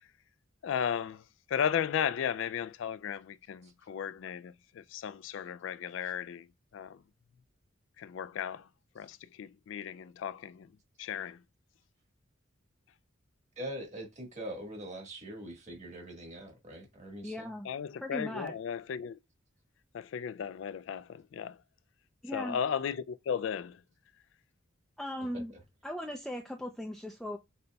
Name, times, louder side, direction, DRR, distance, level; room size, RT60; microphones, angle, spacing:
voice 1, 0.6-1.2 1.5-6.5 6.7-7.0 8.0-8.7 9.0-10.7 11.0-11.4 17.7-19.2 19.9-21.6 22.3-23.8, left 8 dB, 65° left, 0.3 m, -35 dB
voice 2, 13.6-17.5, right 1 dB, 35° right, 1.4 m, -43 dB
voice 3, 17.2-17.7 18.0-18.5 22.2-22.6 25.0-25.5 25.8-27.4, left 1 dB, ahead, 0.4 m, -38 dB
5.4 x 3.9 x 2.2 m
head